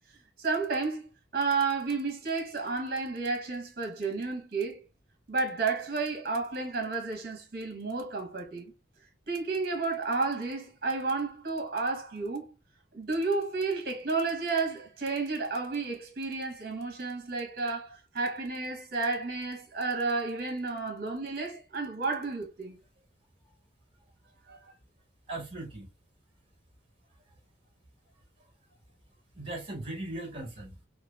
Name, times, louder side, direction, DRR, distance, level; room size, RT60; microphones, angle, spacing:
voice 1, 0.4-4.8 5.3-8.7 9.3-12.5 12.9-22.8 24.5-24.6, right 3 dB, 55° right, 0.9 m, -31 dB
voice 2, 25.3-25.9 29.3-30.7, right 2 dB, 30° right, 1.3 m, -38 dB
2.9 x 2.3 x 2.3 m
head